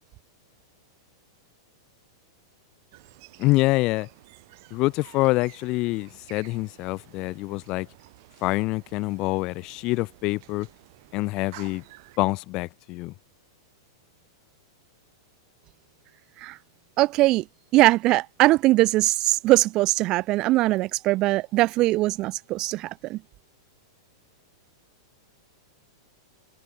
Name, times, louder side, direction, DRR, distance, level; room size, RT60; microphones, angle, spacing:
sound 1, 2.9-12.2, right 23 dB, 45° right, 5.1 m, -52 dB
voice 1, 3.4-4.1 4.7-7.9 8.4-10.7 11.1-11.8 12.2-13.1, left 21 dB, 30° left, 0.6 m, -26 dB
voice 2, 17.0-17.4 17.7-23.2, right 18 dB, 30° right, 0.6 m, -21 dB
supercardioid pair, 160°, 2 cm